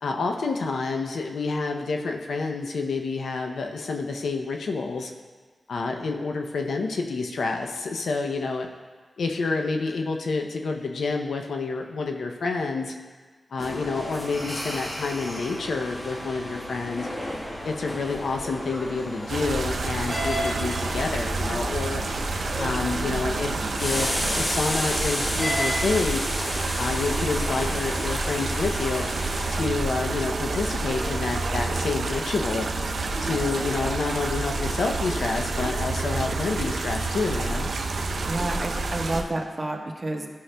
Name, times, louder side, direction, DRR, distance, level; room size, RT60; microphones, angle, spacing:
voice 1, 0.0-5.1 5.7-8.7 9.2-12.9 13.5-17.1 17.6-22.0 22.6-26.2 26.8-29.0 29.5-32.7 33.2-37.7, left 4 dB, 90° left, 3 dB, 0.5 m, -28 dB
sound 1, 13.6-29.6, equal, 30° left, 1.2 m, -33 dB
sound 2, 17.3-33.9, equal, 5° left, 1.5 m, -42 dB
sound 3, 19.3-39.2, right 3 dB, 80° right, 0.5 m, -29 dB
voice 2, 38.2-40.3, right 2 dB, 35° right, 1 dB, 1.1 m, -30 dB
13.0 x 6.3 x 2.2 m, 1.4 s
cardioid pair, 65°, 0 cm